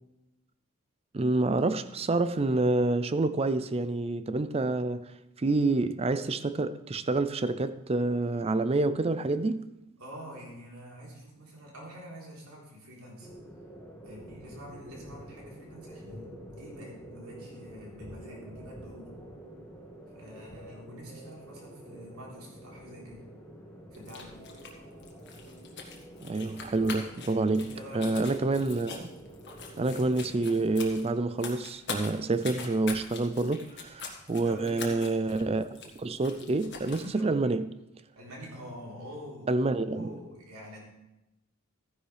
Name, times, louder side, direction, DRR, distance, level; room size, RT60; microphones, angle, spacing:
voice 1, 1.1-5.1 5.4-9.6 26.2-29.0 29.8-37.6 39.5-40.1, right 2 dB, 25° right, 0.4 m, -28 dB
voice 2, 10.0-13.3 14.0-19.1 20.1-23.2 23.9-24.4 27.6-28.6 34.4-34.9 37.1-37.5 38.2-39.5 39.8-40.8, equal, 80° right, 3.8 m, -46 dB
sound 1, 13.2-30.8, right 1 dB, 10° left, 1.8 m, -48 dB
sound 2, 23.9-37.1, left 5 dB, 55° left, 1.6 m, -44 dB
14.5 x 10.0 x 3.4 m
head